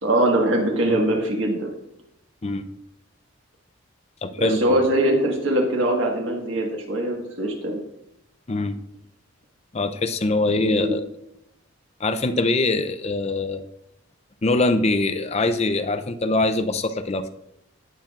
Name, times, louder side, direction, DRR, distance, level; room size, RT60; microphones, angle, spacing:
voice 1, 0.0-1.7 4.4-7.8 10.5-10.9, right 1 dB, 65° right, 1 dB, 1.6 m, -22 dB
voice 2, 4.2-4.8 8.5-8.8 9.7-11.0 12.0-13.6 14.4-17.3, left 2 dB, 30° left, 8 dB, 0.5 m, -23 dB
17.5 x 5.9 x 2.4 m, 0.82 s
head